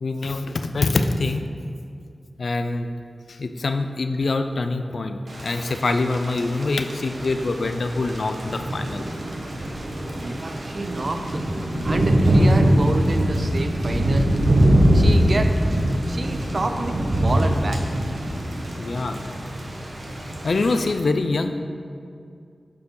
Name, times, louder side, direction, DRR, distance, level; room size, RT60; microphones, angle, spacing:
voice 1, 0.0-1.5 2.4-2.9 3.3-9.0 18.8-19.2 20.2-21.5, left 3 dB, 75° left, 8 dB, 0.4 m, -24 dB
Thunder / Rain, 5.3-20.9, right 1 dB, 70° right, 1.0 m, -23 dB
voice 2, 10.2-11.5 11.8-14.3 14.9-15.6 16.1-17.8, right 2 dB, 55° right, 7 dB, 0.5 m, -28 dB
8.4 x 4.8 x 3.8 m, 2.3 s
wide cardioid pair, 75°, 0 cm